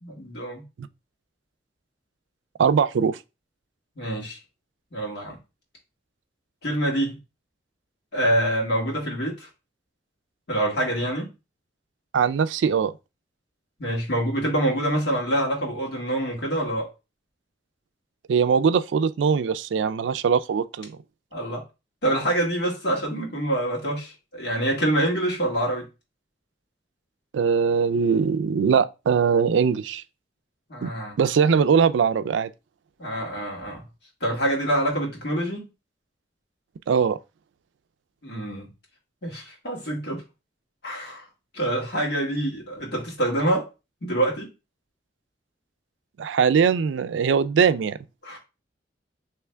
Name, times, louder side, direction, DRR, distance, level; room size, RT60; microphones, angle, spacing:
voice 1, 0.0-0.6 3.9-4.4 4.9-5.4 6.6-7.2 8.1-9.5 10.5-11.3 13.8-16.9 21.3-21.6 22.0-25.9 30.7-31.1 33.0-33.8 34.2-35.7 38.2-38.7 39.2-40.2 40.8-41.2 41.5-43.7 44.0-44.5 48.2-48.4, right 1 dB, 65° left, 1.7 m, -26 dB
voice 2, 2.6-3.2 12.1-12.9 18.3-21.0 27.3-30.0 30.8-30.9 31.2-32.5 36.9-37.2 46.2-48.0, right 6 dB, 85° right, 0.3 m, -21 dB
3.4 x 3.1 x 3.3 m
head